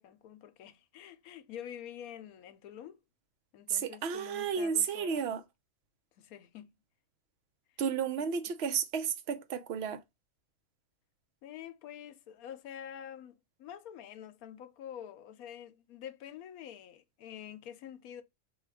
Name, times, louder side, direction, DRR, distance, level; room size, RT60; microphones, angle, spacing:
voice 1, 0.0-3.0 3.5-5.3 6.2-6.7 8.2-8.3 11.4-18.2, left 10 dB, 85° left, 1.1 m, -47 dB
voice 2, 3.7-5.4 7.8-10.0, right 7 dB, 55° right, 0.8 m, -32 dB
4.2 x 2.4 x 4.7 m
omnidirectional pair, 1.5 m